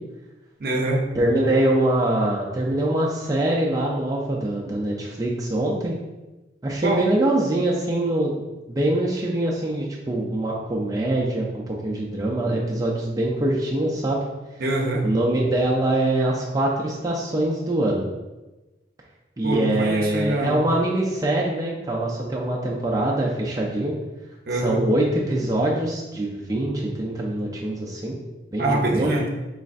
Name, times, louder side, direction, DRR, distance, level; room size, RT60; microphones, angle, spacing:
voice 1, 0.6-1.0 6.8-7.0 14.6-15.0 19.4-20.6 24.5-24.8 28.6-29.3, right 2 dB, 55° right, 0 dB, 0.7 m, -24 dB
voice 2, 1.2-6.0 6.6-8.3 8.7-14.2 15.0-18.1 19.4-23.9 24.6-28.2 28.5-29.1, right 1 dB, 20° right, -4 dB, 0.4 m, -23 dB
5.1 x 3.2 x 2.5 m, 1.1 s
head